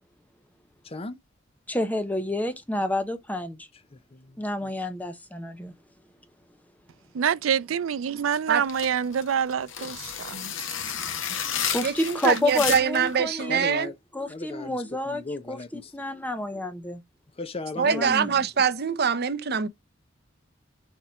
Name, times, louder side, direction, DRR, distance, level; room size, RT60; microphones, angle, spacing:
voice 1, 0.8-1.2 3.9-4.7 13.4-13.9 14.3-15.9 17.4-18.5, left 3 dB, 30° left, 0.7 m, -37 dB
voice 2, 1.7-3.7 4.4-5.7 11.7-13.7 14.1-15.2 15.5-17.0 17.8-18.3, left 1 dB, 10° left, 1.0 m, -29 dB
voice 3, 7.1-10.5, right 7 dB, 85° right, 0.4 m, -26 dB
sound 1, 8.6-13.1, left 8 dB, 70° left, 1.2 m, -31 dB
voice 4, 11.8-13.9 17.8-19.7, right 6 dB, 55° right, 0.7 m, -24 dB
7.0 x 3.0 x 4.9 m
head